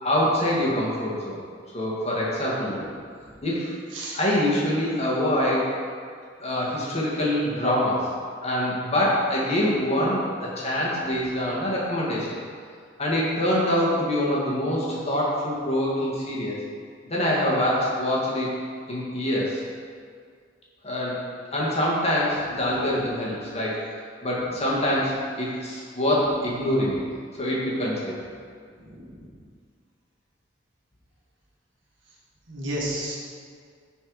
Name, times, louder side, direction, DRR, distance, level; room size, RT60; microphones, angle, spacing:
voice 1, 0.0-1.4 1.7-2.8 3.4-3.7 4.1-5.7 6.4-8.1 8.4-12.4 13.0-16.6 17.0-18.6 18.9-19.6 20.8-21.2 21.5-23.9 24.2-27.0 27.3-28.2, left 1 dB, 30° left, -5 dB, 1.9 m, -25 dB
voice 2, 28.9-29.3 32.5-33.2, right 1 dB, 70° right, -4 dB, 1.8 m, -32 dB
10.0 x 4.4 x 4.8 m, 2.1 s
head